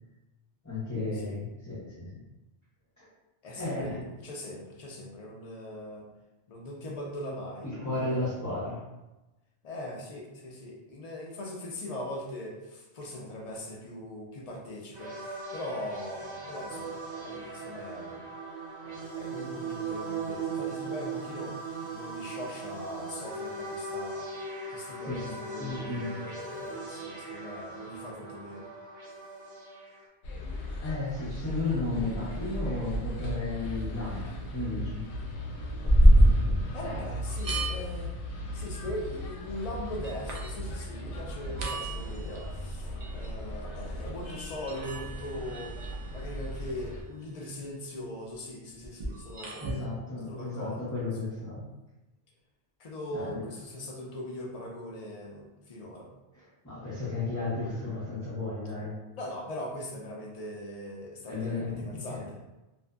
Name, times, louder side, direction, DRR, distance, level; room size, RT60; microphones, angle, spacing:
voice 1, 0.6-2.2 3.0-3.1 3.5-4.0 7.6-8.8 25.1-25.2 25.6-26.2 30.8-35.1 49.6-51.7 53.1-53.4 56.6-58.9 61.3-62.3, left 2 dB, 20° left, -13 dB, 0.7 m, -34 dB
voice 2, 3.4-6.1 6.5-8.3 9.6-18.2 18.8-24.3 24.7-28.7 36.7-38.1 38.5-49.7 50.3-50.9 52.8-56.1 59.1-62.4, left 1 dB, 60° left, -2 dB, 0.4 m, -40 dB
sound 1, 14.9-30.1, right 4 dB, 80° right, 0.9 m, -39 dB
sound 2, 30.2-47.0, equal, 80° left, 0.9 m, -37 dB
sound 3, 33.0-33.1 35.8-37.1 37.3-38.2 38.8-38.9 39.7-39.8 40.0-40.6 41.1-41.2 41.4-42.5 43.0-43.3 44.7-46.4 48.8-49.8, equal, 60° right, 0.4 m, -25 dB
2.5 x 2.5 x 2.3 m, 1.0 s
omnidirectional pair, 1.2 m